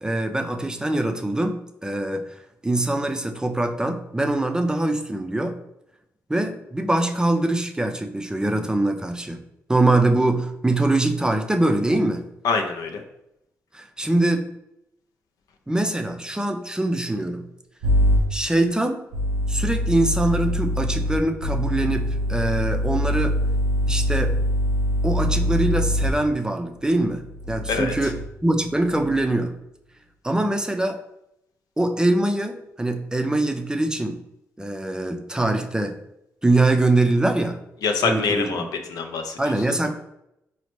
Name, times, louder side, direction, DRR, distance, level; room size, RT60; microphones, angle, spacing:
voice 1, 0.0-2.3 2.6-5.6 6.3-9.4 9.7-12.3 13.7-14.5 15.7-17.5 18.3-19.0 19.5-23.4 23.9-24.4 25.0-29.5 30.2-31.0 31.8-34.2 34.6-36.0 36.4-37.6 38.0-38.7 39.4-39.9, right 2 dB, 10° right, 5 dB, 0.4 m, -23 dB
voice 2, 12.4-13.0 27.7-27.9 37.8-38.6 38.9-39.5, left 4 dB, 75° left, 5 dB, 0.4 m, -24 dB
sound 1, 17.8-18.2 19.1-26.1 27.1-28.3 28.8-29.3, equal, 90° right, 0.5 m, -23 dB
4.0 x 2.1 x 3.0 m, 0.83 s
supercardioid pair, 45°, 6 cm